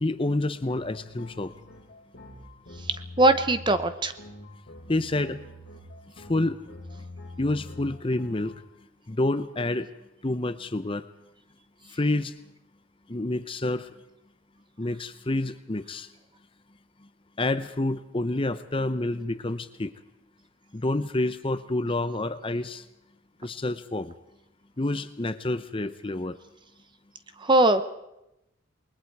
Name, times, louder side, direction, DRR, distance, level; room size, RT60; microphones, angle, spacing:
voice 1, 0.0-1.5 4.9-5.4 6.2-6.6 7.4-8.6 9.1-9.9 10.2-11.0 11.9-12.3 13.1-13.9 14.8-16.1 17.4-19.9 20.7-22.8 23.4-24.1 24.8-26.4, left 2 dB, 25° left, 12 dB, 0.7 m, -28 dB
sound 1, 0.7-8.6, left 2 dB, 45° left, 7.4 m, -44 dB
voice 2, 3.2-4.1 27.4-27.8, right 2 dB, 25° right, 11 dB, 1.0 m, -20 dB
28.0 x 21.0 x 4.7 m, 0.89 s
head